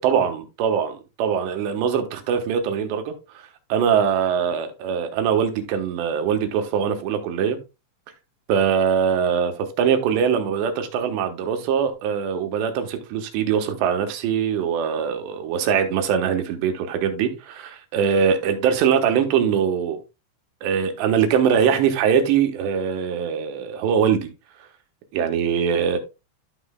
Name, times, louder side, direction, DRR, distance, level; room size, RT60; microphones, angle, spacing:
voice 1, 0.0-3.1 3.7-7.6 8.5-20.0 20.6-24.3 25.1-26.0, right 7 dB, 75° right, 3.1 m, -22 dB
12.5 x 6.1 x 2.2 m
omnidirectional pair, 5.4 m